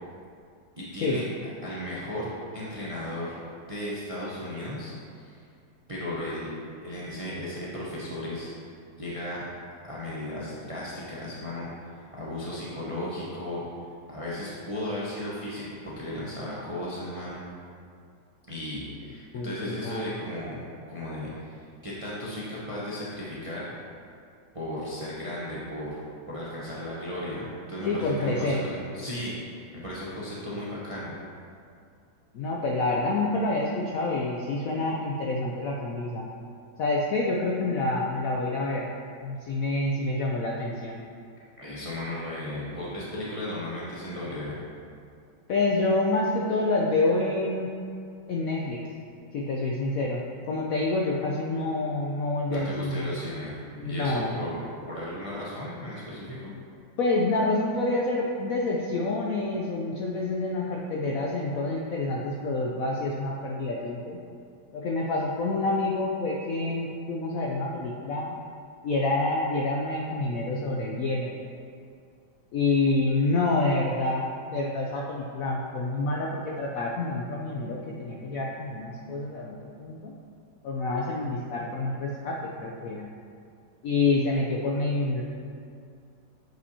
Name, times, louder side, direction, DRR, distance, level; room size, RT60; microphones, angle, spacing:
voice 1, 0.8-1.2 1.6-3.3 3.7-5.4 5.9-6.5 6.8-8.5 9.0-9.4 9.9-11.7 12.1-13.6 14.1-17.4 18.5-20.6 20.9-23.7 24.5-26.0 26.3-31.1 41.6-44.6 52.5-53.5 53.8-54.6 54.9-56.5, left 1 dB, 30° right, -8 dB, 0.6 m, -35 dB
voice 2, 19.3-20.1 27.8-28.6 32.3-36.3 36.8-38.9 39.2-41.0 45.5-47.7 48.3-48.8 49.3-53.2 53.8-54.4 57.0-64.2 64.7-68.4 68.8-71.3 72.5-80.1 80.6-83.1 83.8-85.2, left 2 dB, 70° left, -2 dB, 0.8 m, -27 dB
7.6 x 5.5 x 2.8 m, 2.3 s
omnidirectional pair, 2.0 m